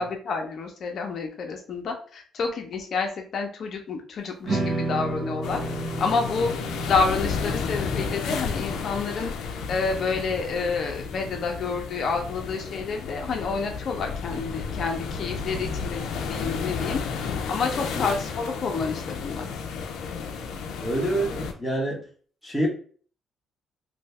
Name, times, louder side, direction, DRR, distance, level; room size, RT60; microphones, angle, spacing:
voice 1, 0.0-5.6 6.0-6.5 6.9-9.3 9.7-17.0 17.5-19.5, left 4 dB, 50° left, 3 dB, 0.7 m, -29 dB
sound 1, 4.5-10.7, right 2 dB, 40° right, 0.7 m, -33 dB
sound 2, 5.4-21.5, left 5 dB, 85° left, 0.4 m, -32 dB
voice 2, 20.8-22.1 22.4-22.7, right 1 dB, 5° left, -3 dB, 0.9 m, -27 dB
2.7 x 2.6 x 3.2 m, 0.43 s
cardioid pair, 135°, 0 cm